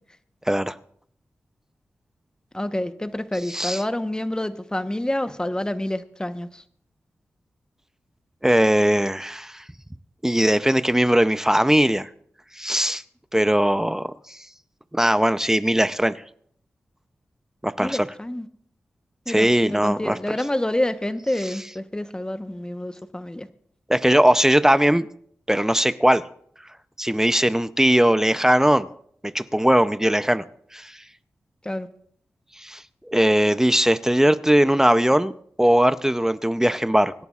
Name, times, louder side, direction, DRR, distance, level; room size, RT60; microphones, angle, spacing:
voice 1, 2.5-6.6 17.8-18.5 19.3-23.5 31.6-31.9, left 1 dB, 15° left, 1.0 m, -28 dB
voice 2, 3.5-3.8 8.4-9.6 10.2-12.1 12.6-13.0 13.3-14.4 14.9-16.2 17.6-18.1 19.3-20.3 23.9-25.1 25.5-26.2 27.0-28.9 29.3-30.4 30.7-30.9 32.6-32.8 33.1-35.3 35.6-37.1, equal, 10° right, 0.6 m, -19 dB
25.0 x 10.5 x 2.5 m
cardioid pair, 40°, 5 cm